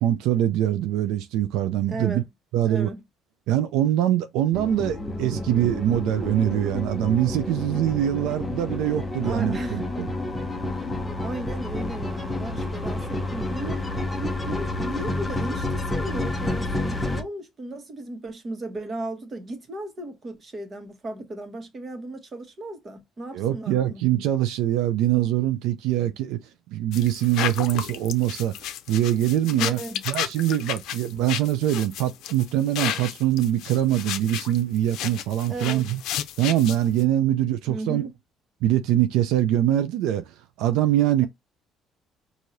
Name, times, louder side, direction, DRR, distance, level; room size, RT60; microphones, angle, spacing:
voice 1, 0.0-2.2 2.5-2.9 3.5-10.1 23.3-26.4 26.7-28.5 28.9-29.8 30.1-36.0 36.4-38.1 38.6-40.2 40.6-41.3, right 12 dB, 90° right, 0.4 m, -23 dB
voice 2, 1.9-2.3 2.6-3.0 9.2-9.9 10.7-10.8 11.2-13.8 14.2-24.0 29.6-30.0 35.5-35.8 37.7-38.1, right 2 dB, 35° right, 1.3 m, -35 dB
sound 1, 4.5-17.2, left 2 dB, 15° left, 0.8 m, -30 dB
sound 2, 26.9-37.0, left 11 dB, 75° left, 0.5 m, -32 dB
4.7 x 2.6 x 2.7 m
cardioid pair, 110°, 0 cm